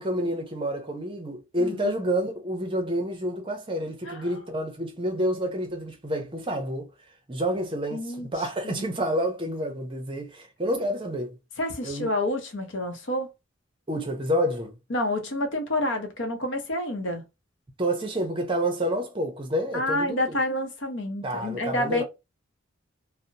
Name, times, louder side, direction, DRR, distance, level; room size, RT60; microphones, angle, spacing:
voice 1, 0.0-6.9 7.3-11.4 11.8-12.1 13.9-14.8 17.8-20.4 21.2-22.0, equal, 25° right, 0.6 m, -29 dB
voice 2, 1.6-1.9 4.0-4.3 7.9-8.3 8.6-8.9 11.6-13.3 14.9-17.2 19.7-22.0, left 1 dB, 65° left, 0.7 m, -28 dB
2.7 x 2.0 x 2.5 m
head